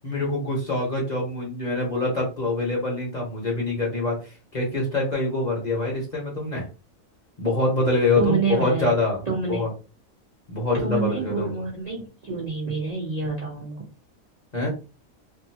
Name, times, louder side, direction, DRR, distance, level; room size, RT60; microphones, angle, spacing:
voice 1, 0.0-4.2 4.5-6.7 7.4-9.2 9.5-9.7 10.5-11.6 14.5-14.7, left 2 dB, 35° left, -2 dB, 1.0 m, -25 dB
voice 2, 8.2-8.9 9.3-9.6 10.8-13.7, right 4 dB, 40° right, -4 dB, 0.7 m, -27 dB
2.6 x 2.6 x 2.7 m, 0.32 s
omnidirectional pair, 1.4 m